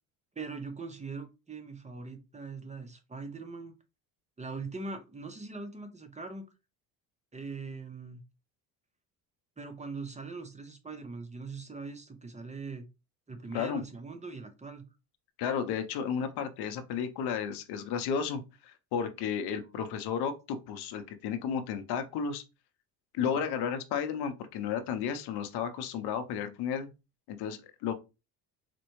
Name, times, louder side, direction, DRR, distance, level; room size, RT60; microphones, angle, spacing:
voice 1, 0.4-3.7 4.4-6.4 7.3-8.2 9.6-12.9 13.3-14.8 23.3-23.5, right 4 dB, 15° right, 7 dB, 0.8 m, -41 dB
voice 2, 15.4-22.4 23.1-26.9 27.3-27.9, left 7 dB, 65° left, 9 dB, 0.8 m, -33 dB
4.2 x 2.2 x 3.1 m, 0.27 s
supercardioid pair, 70°, 42 cm